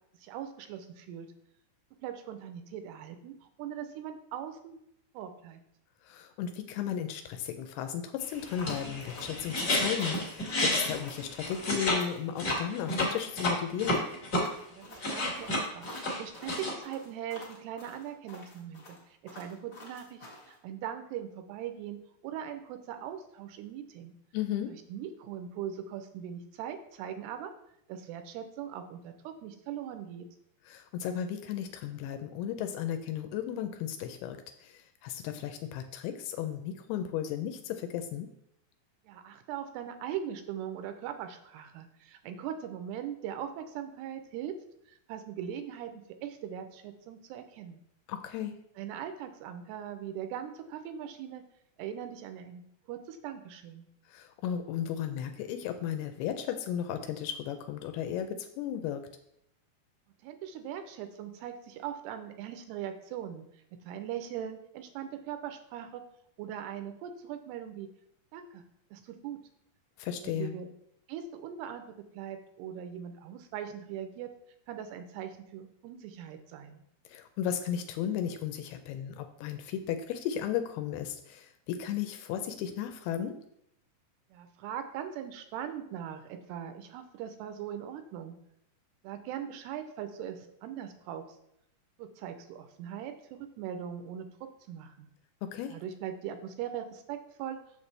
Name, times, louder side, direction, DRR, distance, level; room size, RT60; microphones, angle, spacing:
voice 1, 0.2-1.3 2.0-4.8 5.1-5.6 14.6-24.1 24.7-27.5 27.9-30.3 39.1-44.6 44.9-47.8 48.8-51.4 51.8-53.8 60.2-63.5 63.9-66.0 66.4-67.9 68.3-68.6 68.9-69.4 70.2-70.7 71.1-74.3 74.7-76.8 84.3-88.4 89.0-91.2 92.0-95.1 95.7-97.6, right 9 dB, 80° right, 8 dB, 2.6 m, -40 dB
voice 2, 6.0-14.0 24.3-24.7 30.7-38.3 48.1-48.6 54.1-59.1 70.0-70.5 77.1-83.4 95.4-95.8, left 9 dB, 80° left, 7 dB, 2.4 m, -35 dB
sound 1, 8.4-12.0 12.3-14.4 14.8-16.7, left 1 dB, 40° left, 1.3 m, -31 dB
sound 2, 8.6-20.5, left 2 dB, 60° left, 1.0 m, -49 dB
7.2 x 6.6 x 3.3 m, 0.74 s
omnidirectional pair, 4.8 m